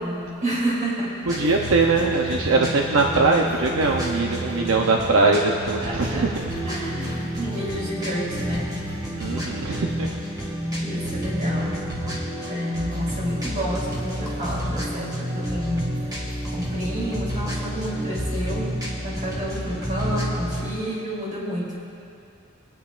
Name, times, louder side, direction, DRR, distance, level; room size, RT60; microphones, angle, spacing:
voice 1, 0.0-1.2 5.8-6.2 6.7-8.8 10.4-10.5 10.8-11.9 12.5-15.9 16.5-18.7 19.0-21.7, equal, 40° right, -6 dB, 3.1 m, -29 dB
sound 1, 1.3-20.7, equal, 20° right, 1.9 m, -29 dB
voice 2, 1.3-6.5 7.0-7.2 9.2-10.1, right 3 dB, 75° right, 1 dB, 0.7 m, -22 dB
25.0 x 9.4 x 2.5 m, 2.6 s
head